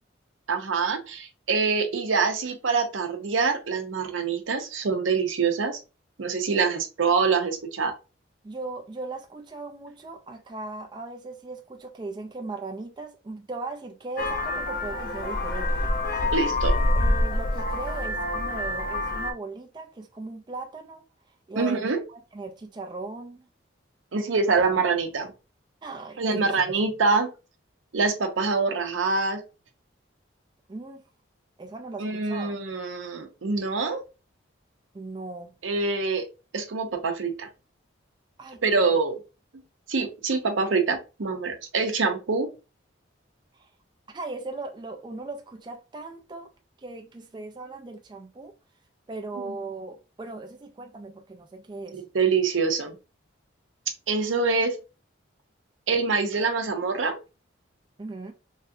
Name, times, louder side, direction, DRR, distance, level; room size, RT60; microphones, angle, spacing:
voice 1, 0.5-5.8 6.2-8.0 16.3-16.8 21.6-22.0 24.1-25.3 26.2-27.3 27.9-29.4 32.0-34.0 35.6-36.3 36.5-37.5 38.6-39.2 39.9-42.5 49.3-49.5 51.9-53.0 54.1-54.8 55.9-57.2, right 4 dB, 85° right, 0.6 m, -25 dB
voice 2, 8.4-15.9 16.9-21.1 21.5-23.4 25.8-26.5 30.7-31.0 31.6-32.6 34.9-35.6 38.4-38.9 43.5-43.7 44.1-46.5 46.8-48.5 49.1-52.0 58.0-58.3, right 3 dB, 25° right, 0.3 m, -38 dB
Vehicle horn car horn honking, 14.2-19.3, left 1 dB, 45° left, 0.5 m, -26 dB
3.2 x 2.6 x 2.5 m
head